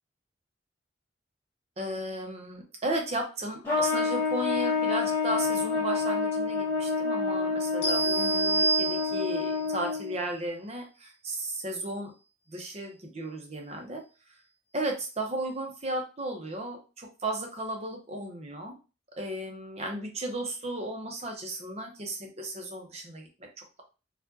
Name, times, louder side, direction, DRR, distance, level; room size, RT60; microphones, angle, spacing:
voice 1, 1.8-12.1 12.5-14.0 14.7-18.8 19.2-23.3 23.6-23.8, right 1 dB, 35° right, 2 dB, 0.8 m, -35 dB
Trumpet, 3.6-10.2, left 4 dB, 10° left, 1.4 m, -28 dB
sound 1, 7.8-9.6, right 3 dB, 70° left, 1.8 m, -28 dB
4.5 x 2.4 x 2.7 m, 0.32 s
head